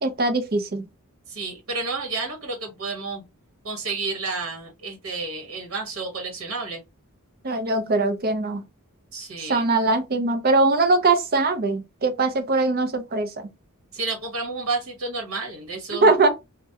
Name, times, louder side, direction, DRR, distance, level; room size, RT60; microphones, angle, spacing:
voice 1, 0.0-0.8 7.4-8.6 9.5-13.3 16.0-16.3, right 3 dB, 45° right, 0.6 m, -21 dB
voice 2, 1.3-3.2 3.6-6.8 9.1-9.7 13.9-16.1, right 3 dB, 70° right, 1.1 m, -31 dB
3.3 x 2.2 x 2.7 m
head